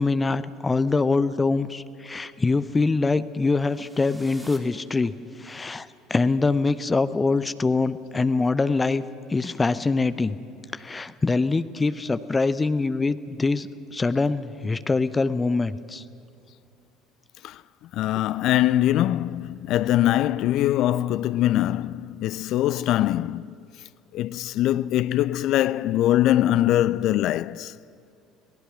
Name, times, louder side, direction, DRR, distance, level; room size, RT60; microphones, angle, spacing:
voice 1, 0.0-5.1 5.4-9.0 9.3-10.4 10.7-16.0, left 3 dB, 20° left, 0.8 m, -24 dB
sound 1, 3.5-5.6, right 1 dB, 10° right, 3.0 m, -51 dB
voice 2, 17.9-23.5 24.1-27.7, left 13 dB, 50° left, 0.4 m, -22 dB
25.0 x 18.0 x 6.0 m
figure-of-eight pair, 60°, 0 cm